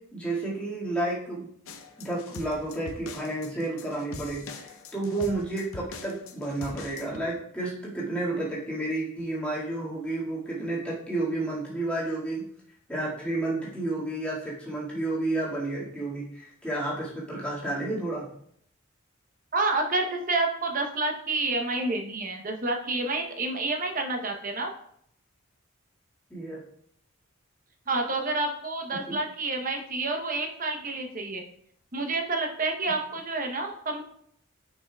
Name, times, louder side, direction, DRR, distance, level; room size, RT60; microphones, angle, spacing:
voice 1, 0.1-1.5 2.0-12.5 12.9-18.3 26.3-26.6 29.1-29.2, right 2 dB, 5° left, -7 dB, 2.0 m, -31 dB
sound 1, 1.7-7.2, left 3 dB, 75° left, 0.7 m, -43 dB
voice 2, 19.5-24.7 27.9-31.4 31.9-34.0, right 2 dB, 40° right, 3 dB, 0.9 m, -29 dB
9.3 x 5.7 x 2.3 m, 0.68 s
head